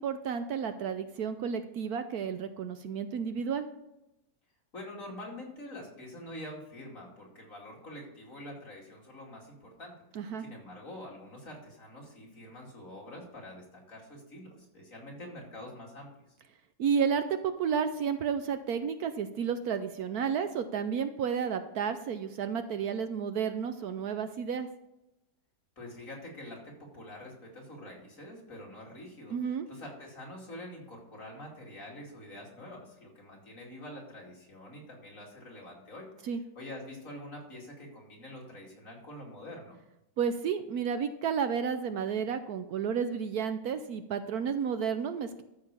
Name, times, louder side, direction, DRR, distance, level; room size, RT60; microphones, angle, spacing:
voice 1, 0.0-3.6 10.2-10.4 16.8-24.7 29.3-29.7 36.3-36.4 40.2-45.4, right 7 dB, 70° right, 9 dB, 1.1 m, -31 dB
voice 2, 4.7-16.1 25.8-39.8, left 1 dB, 50° left, -2 dB, 3.0 m, -46 dB
13.0 x 5.1 x 6.8 m, 0.90 s
omnidirectional pair, 1.8 m